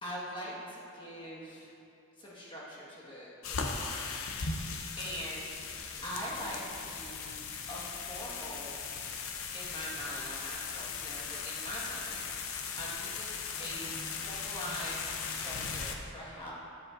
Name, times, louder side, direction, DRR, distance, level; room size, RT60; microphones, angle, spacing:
voice 1, 0.0-1.7 2.2-3.9 4.4-4.7 5.0-5.7 6.0-7.4 7.7-8.8 9.5-12.2 12.8-16.5, equal, 25° left, -6 dB, 1.5 m, -42 dB
sound 1, 3.4-16.0, left 5 dB, 70° left, 0.6 m, -38 dB
9.2 x 7.5 x 2.5 m, 2.8 s
head